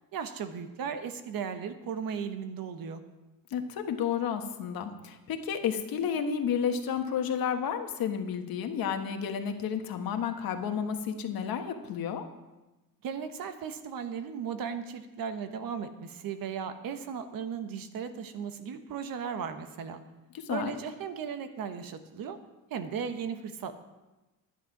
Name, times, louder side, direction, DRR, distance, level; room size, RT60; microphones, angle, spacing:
voice 1, 0.1-3.0 13.0-20.0 20.5-22.4 22.7-23.8, right 7 dB, 75° right, 9 dB, 1.2 m, -36 dB
voice 2, 3.5-12.3 20.4-20.7, left 7 dB, 80° left, 6 dB, 1.4 m, -31 dB
11.0 x 10.0 x 5.9 m, 1.1 s
cardioid pair, 135°, 35 cm